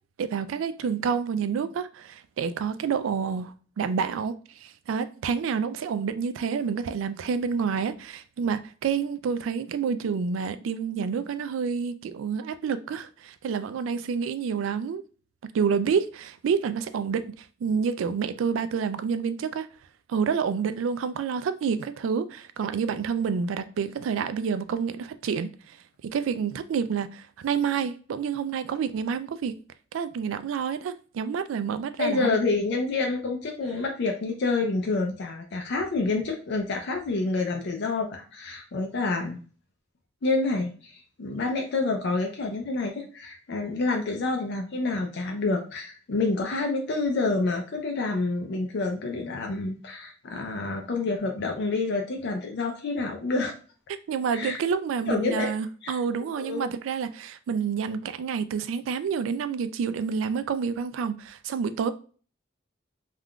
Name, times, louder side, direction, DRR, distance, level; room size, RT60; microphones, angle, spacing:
voice 1, 0.2-4.3 4.6-15.0 15.5-19.7 20.1-25.8 26.1-29.5 29.9-32.4 54.1-61.9, right 6 dB, 90° right, 0.3 m, -28 dB
voice 2, 32.0-39.4 40.2-53.5 54.3-54.6 55.1-55.5 55.8-56.0 56.4-56.6, left 3 dB, 60° left, 0.5 m, -28 dB
3.5 x 2.4 x 2.3 m
head